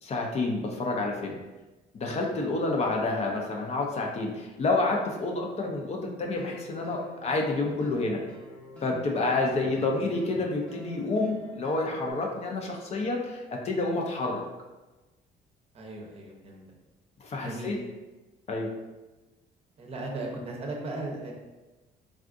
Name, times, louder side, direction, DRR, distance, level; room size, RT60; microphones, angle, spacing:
voice 1, 0.0-1.4 1.9-8.2 8.8-14.4 17.2-17.8 18.5-18.7, left 2 dB, 40° left, 0 dB, 0.5 m, -29 dB
sound 1, 6.4-12.1, left 1 dB, 10° left, 0.8 m, -47 dB
voice 2, 15.7-16.6 17.4-17.7 19.8-21.3, right 2 dB, 35° right, 0 dB, 0.7 m, -37 dB
3.5 x 2.4 x 2.5 m, 1.1 s
cardioid pair, 110°, 17 cm